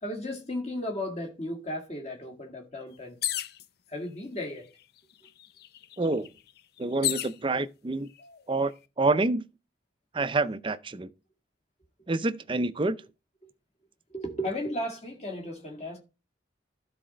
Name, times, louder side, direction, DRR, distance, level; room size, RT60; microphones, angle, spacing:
voice 1, 0.0-3.2 3.9-4.7 14.1-16.0, left 1 dB, 35° left, 2.0 m, -35 dB
sound 1, 3.2-3.7 4.6-4.7 5.0-7.4 8.2-8.7, left 13 dB, 55° left, 0.5 m, -33 dB
voice 2, 6.0-6.3 6.8-8.1 8.5-9.4 10.1-11.1 12.1-13.0, right 2 dB, 25° right, 0.5 m, -27 dB
12.5 x 4.2 x 5.0 m
head